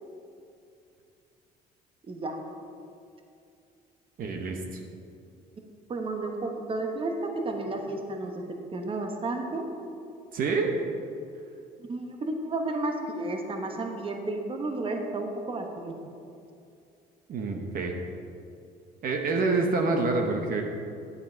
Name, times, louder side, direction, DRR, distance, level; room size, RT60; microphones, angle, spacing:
voice 1, 2.0-2.4 5.9-9.7 11.9-16.0, right 2 dB, 30° right, 3 dB, 1.2 m, -32 dB
voice 2, 4.2-4.8 10.3-10.7 17.3-17.9 19.0-20.6, right 3 dB, 55° right, 2 dB, 1.1 m, -27 dB
9.9 x 8.3 x 4.6 m, 2.5 s
cardioid pair, 110°, 17 cm